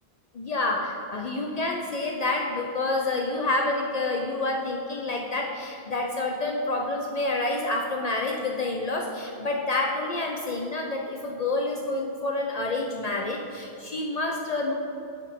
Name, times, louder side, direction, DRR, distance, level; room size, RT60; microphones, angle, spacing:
voice 1, 0.3-14.7, left 2 dB, 55° left, 1 dB, 0.4 m, -28 dB
9.5 x 4.1 x 3.6 m, 2.7 s
omnidirectional pair, 1.1 m